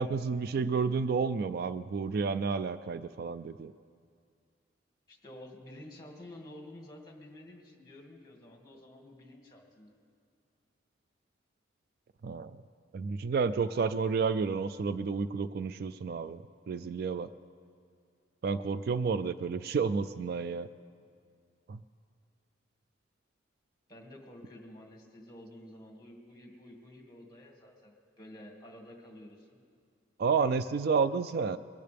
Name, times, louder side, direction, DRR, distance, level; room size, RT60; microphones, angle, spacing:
voice 1, 0.0-3.7 12.2-12.6 12.9-17.3 18.4-20.7 21.7-21.8 30.2-31.6, right 5 dB, 55° right, 14 dB, 0.3 m, -30 dB
voice 2, 5.1-9.9 23.9-29.6, left 1 dB, 20° left, 1 dB, 2.1 m, -50 dB
21.5 x 15.5 x 3.5 m, 2.2 s
head